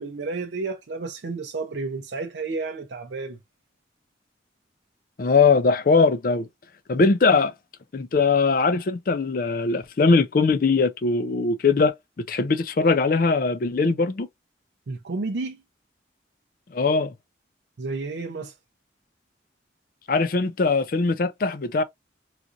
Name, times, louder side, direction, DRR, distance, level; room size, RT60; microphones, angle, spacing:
voice 1, 0.0-3.4 14.9-15.6 17.8-18.5, right 3 dB, 75° right, 0.5 m, -31 dB
voice 2, 5.2-6.5 6.9-7.5 7.9-14.3 16.7-17.1 20.1-21.8, left 4 dB, 50° left, 0.4 m, -21 dB
3.9 x 2.5 x 2.5 m
head